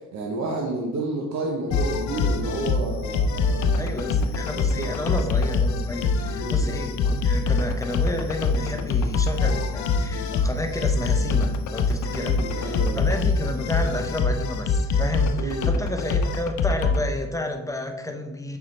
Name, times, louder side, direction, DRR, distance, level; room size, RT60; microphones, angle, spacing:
voice 1, 0.1-3.9 4.3-4.4 4.8-5.2 6.3-6.7 12.1-13.1 15.4-15.7, right 2 dB, 65° right, -1 dB, 1.0 m, -31 dB
sound 1, 1.7-17.0, left 4 dB, 70° left, 0.6 m, -24 dB
voice 2, 3.8-18.6, left 1 dB, 10° left, 5 dB, 0.8 m, -31 dB
6.7 x 4.6 x 3.2 m, 1.1 s
cardioid pair, 90°, 30 cm